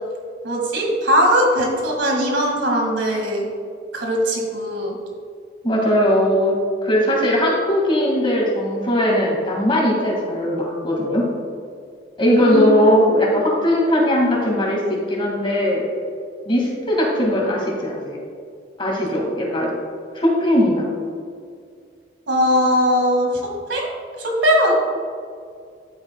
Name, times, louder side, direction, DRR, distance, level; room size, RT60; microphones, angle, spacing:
voice 1, 0.4-3.5 3.9-5.0 12.4-12.7 12.9-13.2 22.3-23.3 23.7-23.9 24.2-24.7, equal, 85° right, 0 dB, 1.9 m, -19 dB
voice 2, 5.6-6.5 6.8-11.2 12.2-15.8 16.5-18.2 18.8-19.7 20.1-20.9, equal, 30° left, -2 dB, 1.9 m, -19 dB
11.0 x 9.0 x 2.2 m, 2.2 s
head